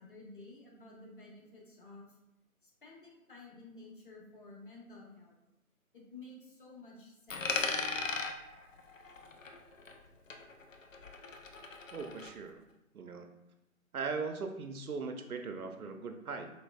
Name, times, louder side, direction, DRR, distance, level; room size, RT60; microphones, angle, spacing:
voice 1, 0.0-2.2 2.6-5.3 5.9-7.8, left 2 dB, 35° left, -3 dB, 1.1 m, -52 dB
Coin (dropping), 7.3-10.1 10.3-12.3, left 4 dB, 65° left, 0.6 m, -38 dB
voice 2, 11.9-12.6 12.9-13.3 13.9-16.5, right 4 dB, 80° right, 5 dB, 0.6 m, -39 dB
4.7 x 3.1 x 2.3 m, 0.88 s
figure-of-eight pair, 150°, 43 cm